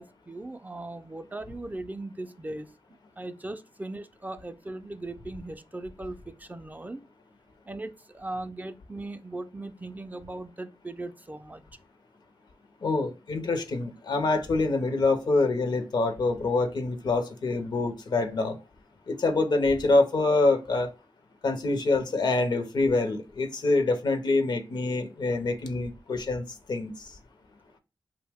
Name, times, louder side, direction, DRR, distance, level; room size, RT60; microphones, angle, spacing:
voice 1, 0.0-2.7 3.2-7.0 7.7-11.6, right 2 dB, 20° right, 0.3 m, -38 dB
voice 2, 12.8-18.6 19.1-20.9 21.4-26.4 26.7-26.9, left 3 dB, 70° left, 0.5 m, -25 dB
2.7 x 2.1 x 3.4 m
cardioid pair, 45°, 8 cm